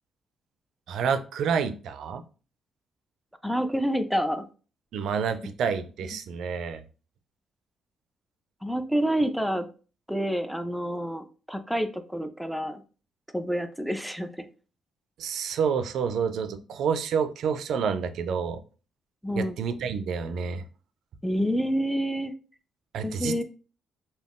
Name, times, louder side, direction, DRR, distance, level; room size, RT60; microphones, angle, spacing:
voice 1, 0.9-2.2 4.9-6.8 15.2-18.6 19.3-20.6 22.9-23.4, right 6 dB, 75° right, 10 dB, 0.3 m, -28 dB
voice 2, 3.4-4.4 8.6-9.7 10.1-12.8 13.3-14.5 19.2-19.6 21.2-22.3 23.0-23.4, equal, ahead, 8 dB, 0.4 m, -28 dB
2.4 x 2.2 x 3.5 m, 0.36 s
cardioid pair, 90°, 0 cm